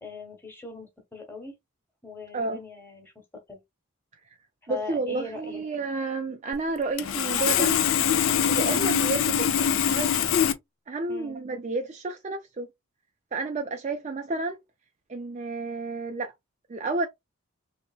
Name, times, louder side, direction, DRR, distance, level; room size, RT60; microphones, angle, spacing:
voice 1, 0.0-1.5 2.0-3.1 3.5-3.6 4.6-5.6 11.1-11.4, left 3 dB, 10° left, 1.1 m, -40 dB
voice 2, 4.7-7.8 8.5-9.5 9.9-10.1 10.9-12.7 13.3-14.6 15.1-16.3 16.7-17.1, right 3 dB, 30° right, 0.4 m, -30 dB
Sawing, 6.5-6.6 7.0-10.5, left 8 dB, 60° left, 0.4 m, -23 dB
3.3 x 2.8 x 2.4 m
head